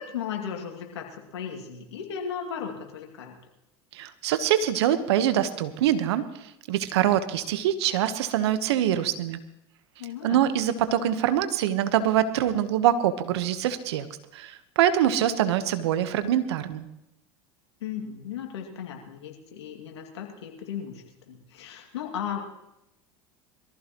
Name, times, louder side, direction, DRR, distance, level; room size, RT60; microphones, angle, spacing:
voice 1, 0.0-3.4 10.0-10.4 17.8-22.4, left 8 dB, 85° left, 1 dB, 2.5 m, -36 dB
voice 2, 3.9-6.2 6.7-9.4 10.2-14.1 14.3-16.9, right 11 dB, 75° right, 11 dB, 1.2 m, -24 dB
22.5 x 14.5 x 3.1 m, 0.86 s
hypercardioid pair, 85°, 14 cm